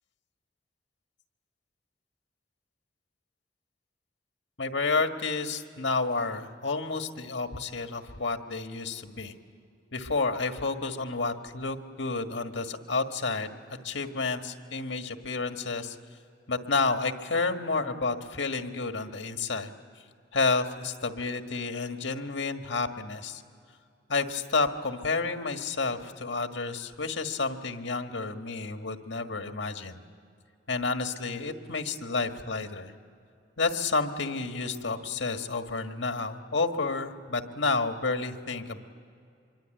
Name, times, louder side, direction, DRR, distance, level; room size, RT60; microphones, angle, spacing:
voice 1, 4.6-9.3 9.9-13.5 13.8-16.0 16.5-19.7 20.3-23.4 24.1-30.0 30.7-32.9 33.6-38.8, left 3 dB, 75° left, 6 dB, 1.6 m, -30 dB
25.5 x 23.5 x 9.1 m, 2.4 s
head